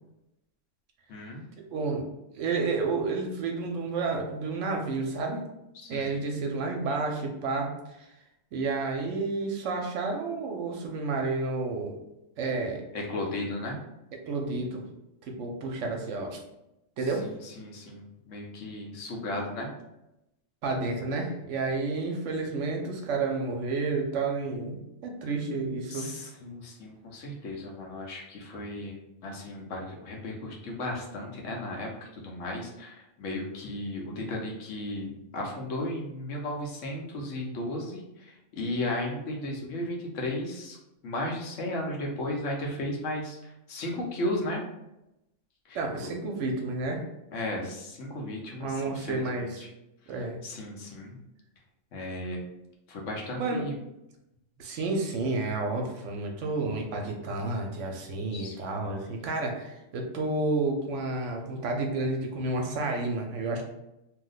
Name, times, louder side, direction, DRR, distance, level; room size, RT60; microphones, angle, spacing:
voice 1, 1.1-1.4 5.8-6.1 12.9-13.8 17.2-19.7 25.9-29.0 29.2-31.9 32.1-40.8 41.0-44.6 45.7-46.1 47.3-49.7 50.4-51.2 51.9-52.4 52.9-53.7 58.3-59.0, left 1 dB, 70° left, -1 dB, 1.0 m, -35 dB
voice 2, 1.7-2.0 2.3-5.4 5.9-7.7 8.0-8.1 8.5-11.9 12.4-12.8 14.3-14.8 15.3-16.4 17.0-17.3 20.6-26.1 37.2-37.3 39.6-39.7 45.7-47.0 48.6-49.7 50.1-50.4 53.4-53.7 54.6-63.6, right 3 dB, 70° right, 1 dB, 0.9 m, -30 dB
2.7 x 2.1 x 3.8 m, 0.88 s
omnidirectional pair, 1.4 m